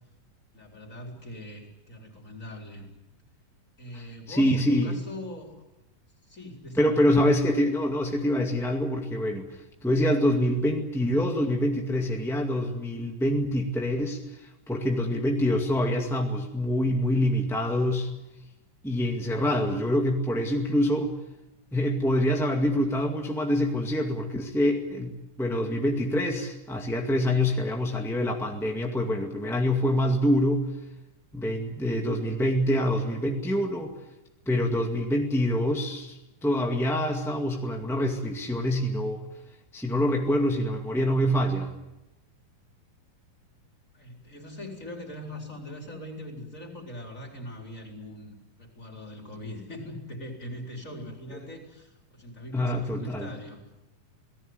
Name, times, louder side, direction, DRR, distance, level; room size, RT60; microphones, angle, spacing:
voice 1, 0.5-2.9 3.8-5.6 6.3-7.1 43.9-53.6, left 1 dB, 20° left, 2 dB, 4.2 m, -41 dB
voice 2, 3.9-4.9 6.8-9.5 9.8-18.1 18.8-21.1 21.7-30.6 31.3-33.9 34.4-39.2 39.7-41.7 52.5-53.3, equal, ahead, 1 dB, 1.1 m, -26 dB
28.0 x 18.5 x 8.0 m, 0.96 s
omnidirectional pair, 3.9 m